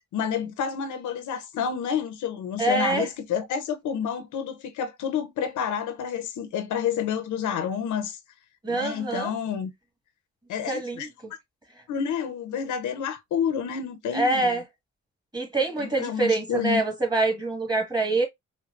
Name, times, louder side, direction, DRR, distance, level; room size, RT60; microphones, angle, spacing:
voice 1, 0.1-8.2 8.7-9.7 10.5-11.1 11.9-14.6 15.8-16.8, left 7 dB, 75° left, 0.8 m, -29 dB
voice 2, 2.6-3.1 8.6-9.3 10.7-11.3 14.1-14.6 15.3-18.3, right 2 dB, 15° right, 1.7 m, -25 dB
4.6 x 2.2 x 2.5 m
cardioid pair, 90°, 30 cm